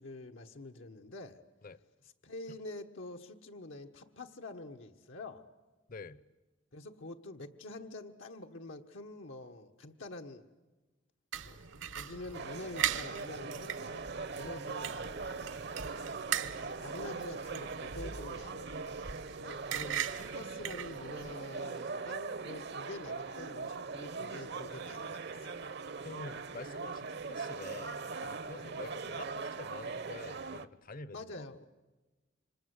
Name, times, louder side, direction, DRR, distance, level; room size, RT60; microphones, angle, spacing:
voice 1, 0.0-1.4 2.0-5.5 6.7-10.4 11.5-11.6 11.9-14.1 14.3-15.5 16.3-19.0 19.7-25.6 28.5-28.7 31.1-31.6, left 2 dB, 80° left, 4 dB, 1.3 m, -47 dB
voice 2, 5.9-6.2 14.4-14.6 19.4-19.6 26.0-31.6, left 3 dB, 45° left, 19 dB, 0.8 m, -47 dB
sound 1, 11.3-21.4, right 9 dB, 80° right, 1.1 m, -40 dB
sound 2, 12.3-30.7, right 4 dB, 60° right, 0.8 m, -41 dB
28.0 x 25.5 x 8.2 m, 1.2 s
head